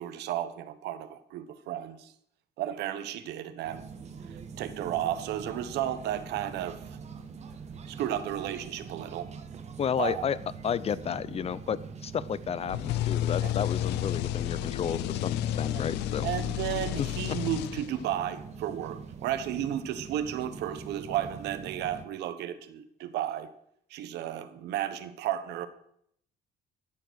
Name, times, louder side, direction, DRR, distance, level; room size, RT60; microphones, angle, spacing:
voice 1, 0.0-2.1 2.6-3.8 4.6-6.8 7.9-9.3 10.0-10.2 13.4-13.5 15.7-15.8 16.2-23.5 23.9-25.7, right 11 dB, 80° right, 11 dB, 1.2 m, -33 dB
sound 1, 3.6-22.0, right 6 dB, 40° right, 1.5 m, -44 dB
voice 2, 9.8-10.4 10.6-16.3 17.0-17.4, left 8 dB, 35° left, 19 dB, 0.5 m, -32 dB
sound 2, 12.7-18.2, left 13 dB, 85° left, 0.5 m, -31 dB
13.5 x 7.9 x 6.4 m, 0.70 s
cardioid pair, 110°, 17 cm